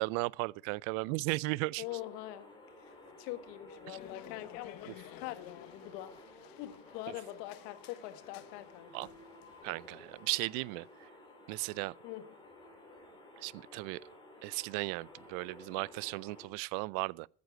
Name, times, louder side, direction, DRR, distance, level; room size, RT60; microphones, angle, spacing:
voice 1, 0.0-1.8 3.9-4.0 4.9-5.0 8.9-9.1 9.6-11.1 11.5-11.9 13.4-14.0 14.4-17.3, right 24 dB, 75° right, 0.6 m, -36 dB
voice 2, 1.8-2.5 2.8-4.9 5.2-9.1 12.0-12.2, left 14 dB, 85° left, 1.7 m, -44 dB
sound 1, 1.8-16.5, left 1 dB, 10° left, 3.4 m, -55 dB
sound 2, 3.9-11.1, left 14 dB, 45° left, 0.8 m, -55 dB
15.0 x 9.4 x 6.1 m
cardioid pair, 150°, 49 cm